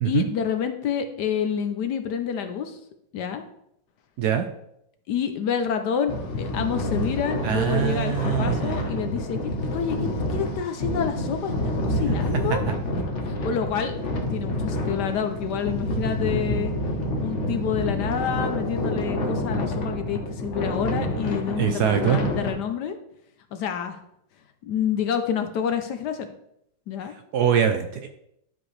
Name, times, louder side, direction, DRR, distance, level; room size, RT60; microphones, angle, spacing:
voice 1, 0.0-2.8 3.1-3.4 5.1-9.4 9.7-12.6 13.2-14.0 14.3-16.7 17.2-23.0 23.5-24.0 24.7-26.3 26.9-27.1, left 7 dB, 70° left, 7 dB, 1.1 m, -28 dB
sound 1, 6.1-22.5, left 1 dB, 45° left, 1.3 m, -28 dB
voice 2, 7.4-8.8 21.6-22.2 27.3-28.1, right 9 dB, 70° right, 7 dB, 1.0 m, -23 dB
11.5 x 5.1 x 3.2 m, 0.78 s
omnidirectional pair, 2.1 m